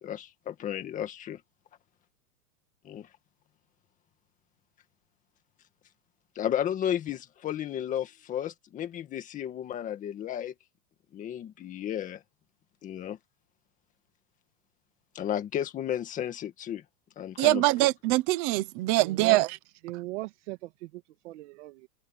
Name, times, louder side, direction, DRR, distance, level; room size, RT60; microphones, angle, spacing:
voice 1, 0.0-1.4 2.8-3.1 6.4-10.5 11.1-12.2 12.8-13.2 15.1-16.8 17.2-17.6, left 10 dB, 15° left, 1.9 m, -33 dB
voice 2, 17.4-19.5, right 19 dB, 15° right, 0.6 m, -23 dB
voice 3, 19.0-19.4 19.8-21.9, right 19 dB, 45° right, 2.4 m, -38 dB
supercardioid pair, 175°, 48 cm